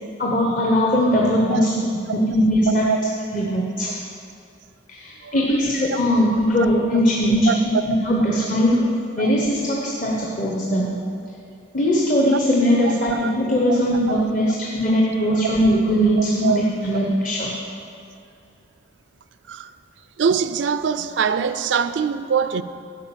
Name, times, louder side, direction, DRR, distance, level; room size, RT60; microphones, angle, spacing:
voice 1, 0.2-1.7 2.1-2.9 3.3-4.0 4.9-7.6 7.8-8.9 9.2-10.9 11.7-17.6, equal, 45° left, 1.0 m, -20 dB
voice 2, 2.7-3.2 5.2-5.3 6.6-6.7 7.5-7.8 9.2-9.3 12.8-12.9 13.2-13.3 13.7-13.8 14.1-14.2 15.6-15.8 16.2-16.6 16.9-17.0 19.5-19.7 20.2-22.6, right 6 dB, 70° right, 0.4 m, -23 dB
11.0 x 5.4 x 7.4 m
head